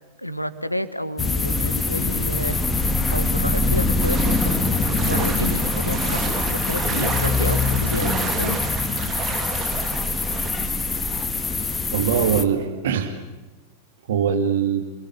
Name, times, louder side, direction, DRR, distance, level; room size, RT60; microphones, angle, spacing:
voice 1, 0.2-8.6, left 1 dB, 90° left, 13 dB, 1.5 m, -30 dB
sound 1, 1.2-12.4, left 3 dB, 15° left, 2.1 m, -23 dB
sound 2, 4.0-10.5, right 6 dB, 25° right, 2.7 m, -31 dB
voice 2, 11.9-13.2 14.1-14.8, right 7 dB, 60° right, 8 dB, 2.2 m, -22 dB
28.5 x 22.0 x 8.7 m, 1.1 s
figure-of-eight pair, 90°, 0 cm